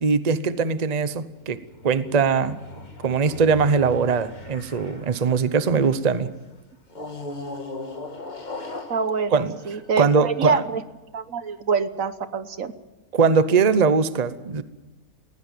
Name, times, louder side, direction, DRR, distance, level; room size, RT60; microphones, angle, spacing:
voice 1, 0.0-2.6 3.0-6.3 9.3-9.5 10.0-10.6 13.1-14.6, right 5 dB, 35° right, 13 dB, 0.9 m, -21 dB
sound 1, 1.5-6.1 6.9-10.5, left 2 dB, 30° left, 1.8 m, -39 dB
voice 2, 8.9-10.8 11.1-12.7, right 5 dB, 70° right, 12 dB, 1.4 m, -25 dB
19.5 x 16.5 x 9.2 m, 1.1 s
omnidirectional pair, 1.5 m